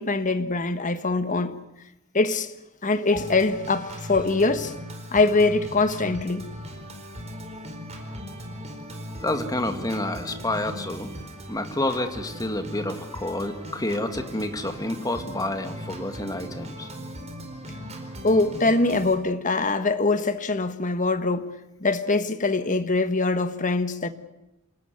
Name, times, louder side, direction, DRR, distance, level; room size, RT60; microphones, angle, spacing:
voice 1, 0.0-1.6 2.1-2.5 2.8-4.7 5.1-6.5 18.2-21.5 21.8-24.1, left 3 dB, 35° left, 1.5 m, -23 dB
Organ, 3.1-19.1, equal, 30° right, 4.5 m, -39 dB
voice 2, 9.2-11.1 11.5-16.9, left 1 dB, 15° left, 2.0 m, -29 dB
27.5 x 18.5 x 9.5 m
head